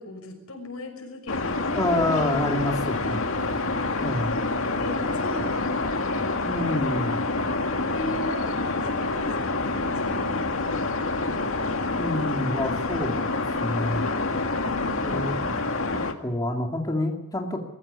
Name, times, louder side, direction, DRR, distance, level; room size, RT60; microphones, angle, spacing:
voice 1, 0.0-2.1 3.9-4.0 4.6-6.3 7.9-12.0 14.6-15.5, left 1 dB, 90° left, 4 dB, 6.2 m, -39 dB
sound 1, 1.3-16.1, left 3 dB, 70° left, 2.1 m, -27 dB
voice 2, 1.7-3.7 4.0-4.3 6.5-7.2 12.0-14.1 15.0-15.4 16.2-17.6, left 1 dB, 15° left, 2 dB, 2.5 m, -28 dB
22.0 x 15.5 x 9.9 m, 0.93 s
head